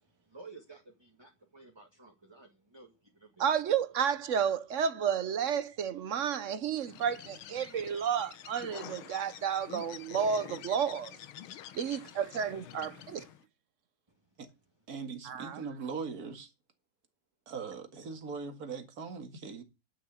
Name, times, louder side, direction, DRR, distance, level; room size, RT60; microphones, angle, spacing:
voice 1, 0.3-3.5, right 3 dB, 15° right, 1.7 m, -53 dB
voice 2, 3.4-11.1 11.7-13.2 15.3-15.6, right 7 dB, 65° right, 0.7 m, -31 dB
Bird, 6.8-13.4, left 11 dB, 80° left, 1.7 m, -47 dB
voice 3, 14.9-16.5 17.5-19.6, right 5 dB, 45° right, 2.2 m, -40 dB
11.0 x 6.3 x 8.1 m
omnidirectional pair, 2.3 m